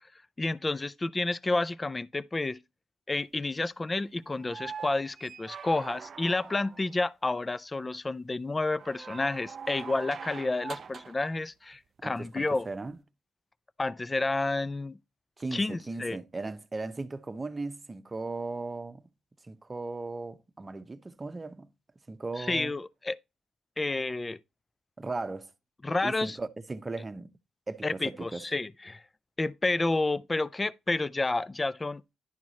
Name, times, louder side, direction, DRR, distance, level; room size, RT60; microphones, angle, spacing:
voice 1, 0.4-2.6 3.1-12.7 13.8-15.0 15.5-16.2 22.4-23.2 23.8-24.4 25.8-26.4 27.8-29.0 29.4-32.0, left 2 dB, 20° left, 0.4 m, -30 dB
sound 1, 4.4-6.9 8.7-11.2 12.9-13.0, right 6 dB, 45° right, 0.3 m, -43 dB
voice 2, 12.0-13.0 15.4-19.0 19.4-21.7 22.1-22.7 25.0-25.5 26.0-27.3 27.7-28.5, right 3 dB, 25° right, 0.8 m, -37 dB
11.0 x 4.7 x 4.1 m
cardioid pair, 90°, 0 cm